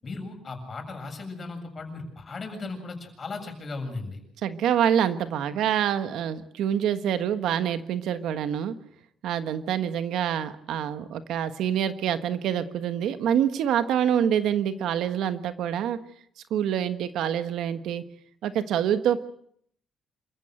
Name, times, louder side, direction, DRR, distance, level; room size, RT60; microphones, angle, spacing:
voice 1, 0.0-4.2, left 3 dB, 40° left, 4 dB, 7.1 m, -36 dB
voice 2, 4.4-8.8 9.2-16.0 16.5-18.0 18.4-19.2, right 9 dB, 80° right, 10 dB, 1.4 m, -26 dB
27.5 x 15.0 x 7.9 m, 0.67 s
cardioid pair, 90°, 0 cm